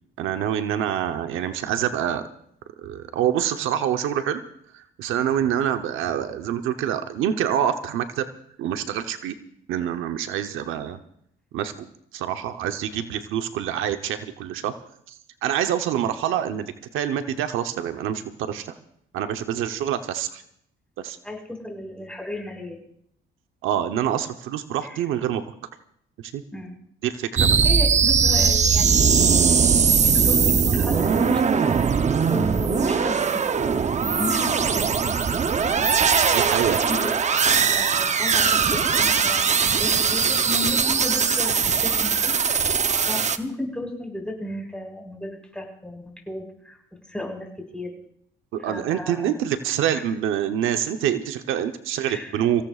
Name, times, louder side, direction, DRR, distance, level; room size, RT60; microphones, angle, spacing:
voice 1, 0.2-2.3 2.8-4.4 4.7-8.3 8.6-9.3 9.7-11.0 11.5-11.7 12.1-14.7 15.1-15.2 15.4-18.7 19.1-20.4 21.0-21.2 23.6-25.4 26.3-26.4 27.0-27.5 36.3-36.8 48.5-52.6, right 10 dB, 90° right, 8 dB, 0.9 m, -26 dB
voice 2, 21.2-22.8 24.8-25.0 26.5-26.7 27.6-31.8 32.3-33.7 34.0-34.9 35.6-35.9 36.7-37.2 37.6-42.3 43.1-46.8 47.1-47.9 48.6-49.3 49.9-50.0 52.0-52.3, left 2 dB, 5° left, 0 dB, 5.2 m, -34 dB
sound 1, 27.4-43.4, right 6 dB, 35° right, 0.7 m, -20 dB
25.5 x 16.5 x 2.4 m, 0.68 s
cardioid pair, 90°, 20 cm